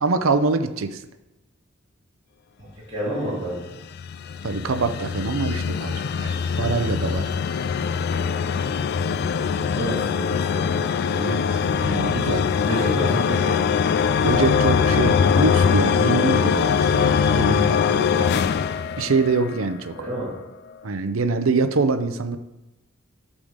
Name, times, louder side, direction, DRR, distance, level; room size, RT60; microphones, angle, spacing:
voice 1, 0.0-1.0 4.4-7.3 11.1-12.4 14.2-18.3 19.0-20.1 20.8-22.4, right 4 dB, 90° right, 9 dB, 0.6 m, -24 dB
voice 2, 2.6-3.5 8.9-9.2 9.5-10.6 12.1-13.6 19.9-20.3, right 1 dB, 25° right, -10 dB, 2.9 m, -30 dB
sound 1, 3.6-19.7, left 6 dB, 55° left, 0.3 m, -22 dB
8.5 x 3.7 x 6.5 m, 0.98 s
head